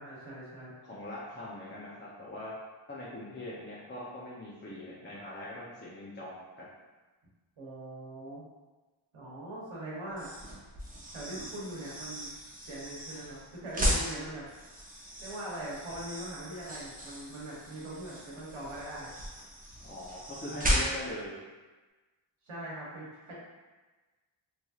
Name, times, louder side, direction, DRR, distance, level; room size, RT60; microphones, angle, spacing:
voice 1, 0.0-0.7 7.6-8.4 9.1-10.3 11.1-12.3 12.6-14.5 15.2-19.1 22.5-23.3, right 1 dB, 85° right, -6 dB, 1.0 m, -41 dB
voice 2, 0.8-2.5 2.9-6.7 19.8-21.4, left 1 dB, 25° left, -6 dB, 0.5 m, -42 dB
Mouche écrasée, 10.1-21.2, equal, 20° right, 0.6 m, -36 dB
3.0 x 2.7 x 2.3 m, 1.2 s
wide cardioid pair, 105°, 48 cm